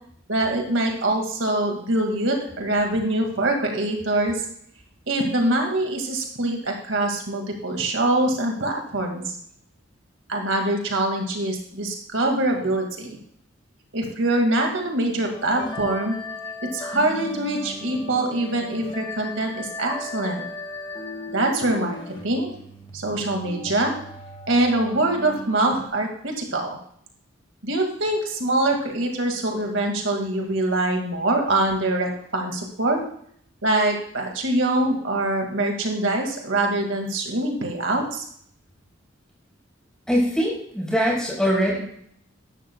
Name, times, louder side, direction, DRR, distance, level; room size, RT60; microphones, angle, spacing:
voice 1, 0.3-4.4 5.1-9.3 10.3-13.2 13.9-16.1 16.7-20.4 21.3-22.0 22.2-22.5 22.9-23.9 24.5-26.8 27.6-33.0 33.6-38.2, right 1 dB, 75° right, 2 dB, 2.2 m, -24 dB
sound 1, 15.3-25.9, left 1 dB, 25° left, 2.0 m, -37 dB
voice 2, 40.1-41.8, equal, 5° left, -4 dB, 5.3 m, -22 dB
14.0 x 12.0 x 2.3 m, 0.65 s
head